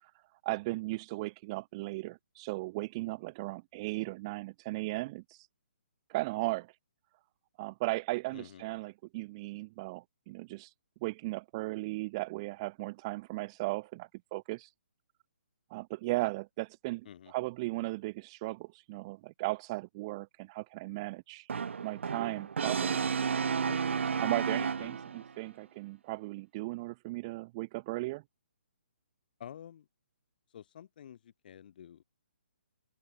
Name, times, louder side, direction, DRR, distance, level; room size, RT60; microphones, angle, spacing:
voice 1, 0.4-5.5 6.1-6.8 7.6-10.7 11.0-14.7 15.7-21.5 21.8-23.1 24.2-28.2, right 22 dB, 25° right, 0.8 m, -36 dB
voice 2, 8.3-8.6 17.0-17.3 23.7-24.0 24.8-24.9 29.4-29.9 30.5-32.0, left 9 dB, 45° left, 1.5 m, -49 dB
Brass instrument, 21.5-25.3, right 6 dB, 70° right, 0.7 m, -32 dB
hypercardioid pair, 160°, 7 cm